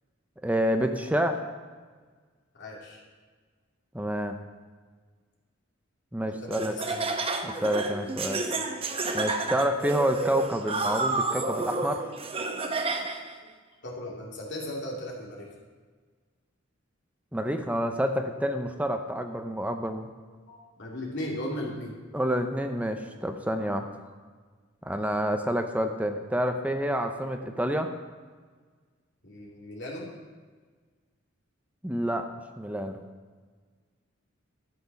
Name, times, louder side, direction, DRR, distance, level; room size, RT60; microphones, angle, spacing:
voice 1, 0.4-1.4 3.9-4.4 6.1-6.7 7.4-8.4 9.1-12.0 17.3-20.1 22.1-23.9 24.8-27.9 31.8-32.3 32.6-33.0, equal, 5° right, 6 dB, 0.6 m, -28 dB
voice 2, 2.5-3.0 6.3-7.1 13.4-13.5 13.8-15.5 20.5-21.9 29.2-30.1, left 1 dB, 60° left, -2 dB, 2.6 m, -37 dB
Laughter, 6.5-13.3, right 3 dB, 30° right, 0.8 m, -30 dB
12.0 x 7.9 x 5.9 m, 1.5 s
head